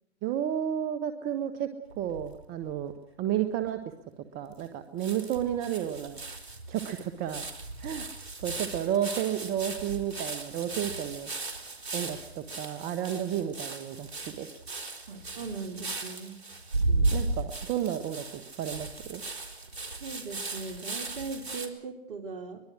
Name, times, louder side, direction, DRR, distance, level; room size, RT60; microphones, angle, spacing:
voice 1, 0.2-1.7 2.0-2.9 3.2-3.8 4.2-6.2 6.7-7.4 7.8-8.1 8.4-11.3 11.9-14.1 14.4-14.5 16.9-19.2, right 10 dB, 30° right, 9 dB, 1.7 m, -32 dB
sound 1, 1.9-2.8 3.4-3.5 3.6-3.7 4.6-4.7 5.0-21.7, right 2 dB, 75° right, 4.5 m, -36 dB
voice 2, 15.1-16.4 20.0-22.6, right 4 dB, 55° right, 6 dB, 3.3 m, -39 dB
24.0 x 21.5 x 6.3 m, 0.81 s
hypercardioid pair, 125°, 31 cm